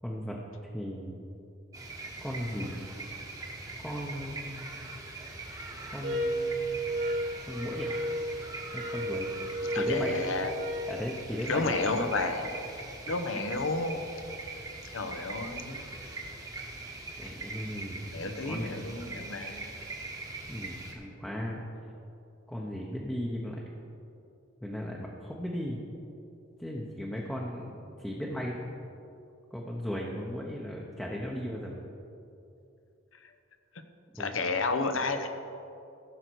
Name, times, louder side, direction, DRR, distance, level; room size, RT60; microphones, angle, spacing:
voice 1, 0.0-0.4 0.6-1.2 2.2-2.8 3.8-4.7 5.9-6.7 7.5-7.9 8.7-9.3 9.7-10.1 10.9-11.8 17.2-18.0 18.3-18.8 20.5-21.6 22.5-23.6 24.6-25.8 26.6-28.7 29.5-31.8 34.2-34.4, equal, 5° left, -3 dB, 0.8 m, -36 dB
sound 1, 1.7-20.9, right 3 dB, 20° right, 1.1 m, -42 dB
sound 2, 6.0-11.0, right 1 dB, 60° right, 1.2 m, -33 dB
voice 2, 9.7-10.5 11.5-12.5 13.1-14.0 14.9-15.8 18.1-19.9 34.2-35.3, left 3 dB, 75° left, 7 dB, 0.9 m, -31 dB
15.0 x 6.5 x 4.6 m, 2.7 s
head